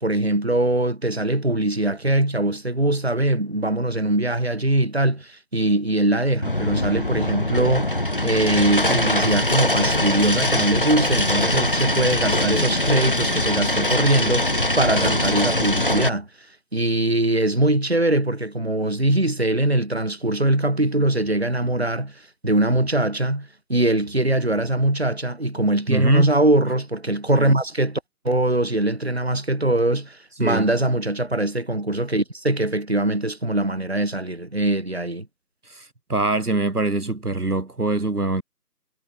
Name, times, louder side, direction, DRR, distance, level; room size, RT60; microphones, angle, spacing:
voice 1, 0.0-16.3 16.7-35.3, right 1 dB, 40° right, 1.9 m, -22 dB
sound 1, 6.4-16.1, left 1 dB, 30° left, 2.5 m, -22 dB
voice 2, 25.9-26.3 30.4-30.7 35.7-38.4, right 2 dB, 65° right, 1.8 m, -24 dB
figure-of-eight pair, 175°, 49 cm